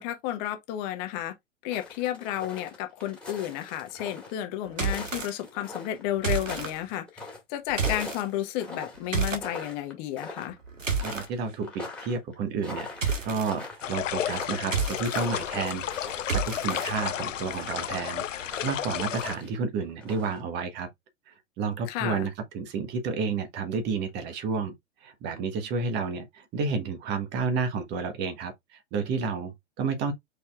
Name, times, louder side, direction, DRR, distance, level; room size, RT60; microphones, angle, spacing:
voice 1, 0.0-1.3 1.6-10.6 21.9-22.3, left 12 dB, 35° left, 1.2 m, -32 dB
sound 1, 1.7-4.3 4.7-7.4 7.8-9.9 10.2-10.6 11.0-17.9 18.4-19.5 19.8-20.4, left 3 dB, 5° left, 2.0 m, -42 dB
sound 2, 4.7-5.3 6.2-6.7 7.7-8.2 9.1-9.5 10.5-11.3 13.0-13.5 14.6-15.3 16.3-16.9, right 5 dB, 90° right, 1.3 m, -29 dB
voice 2, 11.0-20.9 21.3-24.7 25.0-30.1, right 5 dB, 25° right, 1.1 m, -31 dB
sound 3, 13.8-19.4, left 10 dB, 80° left, 0.5 m, -32 dB
5.1 x 4.2 x 2.4 m
figure-of-eight pair, 110°, 37 cm